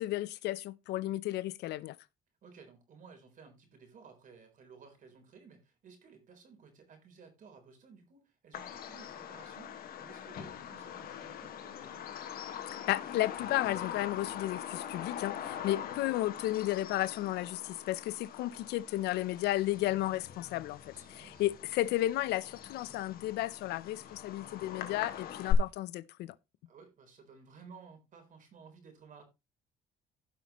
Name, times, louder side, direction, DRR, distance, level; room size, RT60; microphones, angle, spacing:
voice 1, 0.0-2.0 12.9-26.3, left 15 dB, 80° left, 0.6 m, -33 dB
voice 2, 2.4-12.1 15.5-15.9 18.5-18.7 20.9-21.5 26.7-29.2, right 5 dB, 50° right, 4.0 m, -56 dB
Bird vocalization bird call bird song, 8.5-25.5, left 9 dB, 65° left, 1.6 m, -42 dB
16.0 x 5.8 x 3.0 m
cardioid pair, 110°, 17 cm